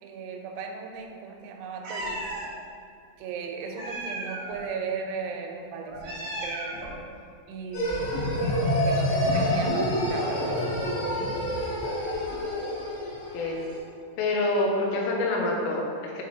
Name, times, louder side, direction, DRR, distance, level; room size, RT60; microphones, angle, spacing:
voice 1, 0.0-2.2 3.2-6.8 7.5-8.2 8.7-10.8, right 5 dB, 90° right, 2 dB, 3.4 m, -36 dB
Meow, 1.8-2.5 3.7-4.6 5.9-7.0, right 1 dB, 70° right, 2.1 m, -35 dB
sound 1, 7.7-13.7, equal, 60° left, 2.7 m, -27 dB
voice 2, 14.2-16.2, left 2 dB, 85° left, -1 dB, 2.6 m, -26 dB
8.8 x 4.7 x 2.8 m, 2.3 s
omnidirectional pair, 6.0 m